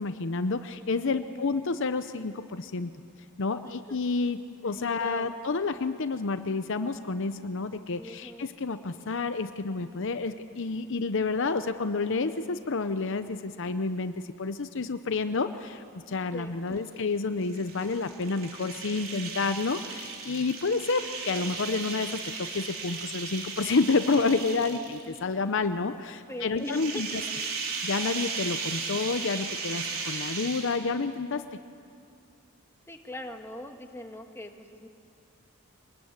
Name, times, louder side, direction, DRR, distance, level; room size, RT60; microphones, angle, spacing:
voice 1, 0.0-2.9 3.4-27.2 27.8-31.4, left 4 dB, 60° left, 10 dB, 0.7 m, -29 dB
voice 2, 1.2-1.5 3.6-3.7 4.9-5.4 7.9-8.5 16.3-17.0 26.3-27.2 32.9-34.9, left 1 dB, 10° left, 4 dB, 1.6 m, -41 dB
sound 1, 17.4-25.2 26.6-31.0, right 4 dB, 75° right, 3.6 m, -36 dB
24.5 x 20.0 x 9.6 m, 2.5 s
head